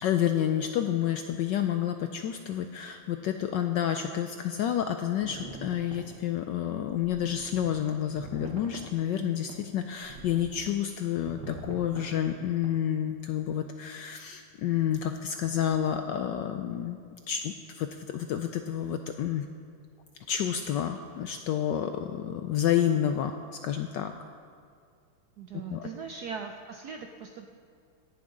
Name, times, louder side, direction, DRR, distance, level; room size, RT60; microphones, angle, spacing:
voice 1, 0.0-17.0 17.3-19.4 20.3-23.3 23.6-24.1 25.7-25.9, left 10 dB, 75° left, 7 dB, 1.0 m, -29 dB
sound 1, 5.2-6.2 7.0-7.7 8.1-8.9 9.5-9.6 10.0-10.7 11.3-12.1 12.6-12.7, right 3 dB, 60° right, 1.8 m, -43 dB
voice 2, 25.4-27.5, right 5 dB, 75° right, 4 dB, 0.9 m, -40 dB
17.5 x 11.0 x 3.8 m, 2.2 s
omnidirectional pair, 2.4 m